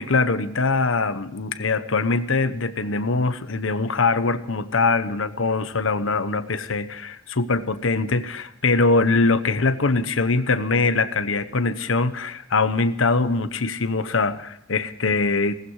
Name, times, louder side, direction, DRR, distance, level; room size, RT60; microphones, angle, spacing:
voice 1, 0.0-15.5, left 3 dB, 85° left, 12 dB, 1.0 m, -22 dB
18.0 x 15.5 x 4.8 m, 0.81 s
head